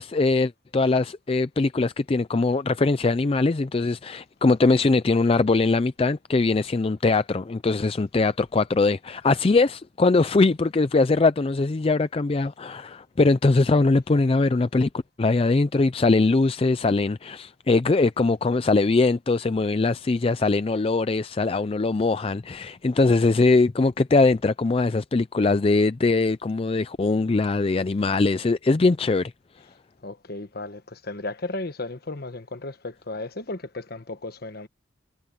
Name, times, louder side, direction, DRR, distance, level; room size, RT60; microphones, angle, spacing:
voice 1, 0.0-14.9 15.2-29.3, left 3 dB, 30° left, 0.4 m, -21 dB
voice 2, 30.0-34.7, left 2 dB, 50° left, 1.3 m, -34 dB
head